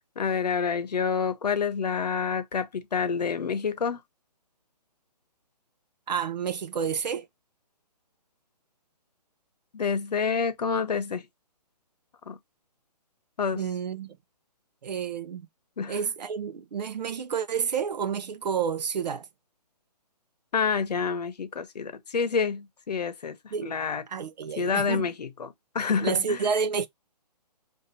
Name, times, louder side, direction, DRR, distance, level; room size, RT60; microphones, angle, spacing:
voice 1, 0.2-4.0 9.7-11.3 12.3-12.4 13.4-13.6 15.8-16.0 20.5-24.0 24.6-26.5, left 6 dB, 70° left, 0.9 m, -28 dB
voice 2, 6.1-7.3 13.6-14.2 14.8-15.5 15.9-19.3 23.5-23.7 24.1-25.1 26.0-26.9, right 6 dB, 85° right, 0.6 m, -29 dB
2.7 x 2.6 x 4.0 m
hypercardioid pair, 180°, 21 cm